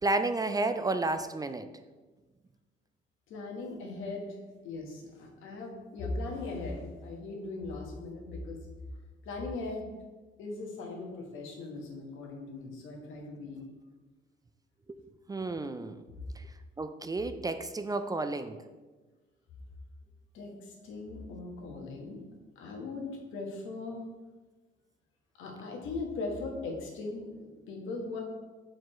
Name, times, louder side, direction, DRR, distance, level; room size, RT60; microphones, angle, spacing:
voice 1, 0.0-1.7 14.9-15.0 15.3-16.0 16.4-18.6, right 2 dB, 20° right, 9 dB, 0.3 m, -32 dB
voice 2, 3.3-4.3 4.6-8.6 9.2-9.9 10.4-13.6 20.3-22.2 22.6-24.1 25.4-28.2, left 3 dB, 85° left, 0 dB, 1.3 m, -39 dB
4.7 x 4.6 x 4.3 m, 1.3 s
cardioid pair, 90°, 20 cm